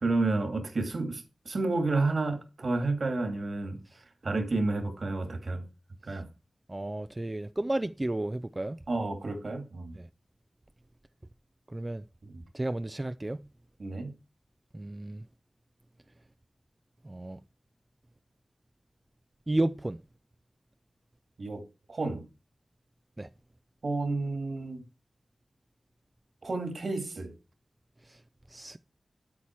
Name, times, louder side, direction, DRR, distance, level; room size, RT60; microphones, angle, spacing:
voice 1, 0.0-3.8 4.2-5.6 6.1-6.3 8.9-9.9 13.8-14.1 21.4-21.6 21.9-22.2 23.8-24.8 26.4-27.3, right 3 dB, 65° right, 2.4 m, -30 dB
voice 2, 6.7-8.8 9.9-10.1 11.7-12.0 12.5-13.4 14.7-15.2 17.0-17.4 19.5-20.0 23.2-23.3 28.0-28.2 28.5-28.8, right 1 dB, 25° right, 0.4 m, -33 dB
8.7 x 8.5 x 4.5 m
wide cardioid pair, 80°, 0 cm